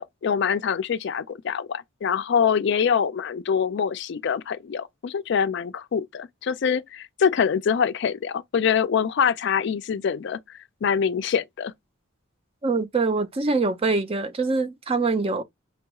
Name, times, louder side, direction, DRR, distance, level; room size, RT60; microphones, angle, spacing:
voice 1, 0.0-10.4 10.8-11.7, left 7 dB, 60° left, 0.4 m, -24 dB
voice 2, 12.6-15.4, right 3 dB, 30° right, 0.4 m, -24 dB
5.2 x 2.3 x 2.8 m
head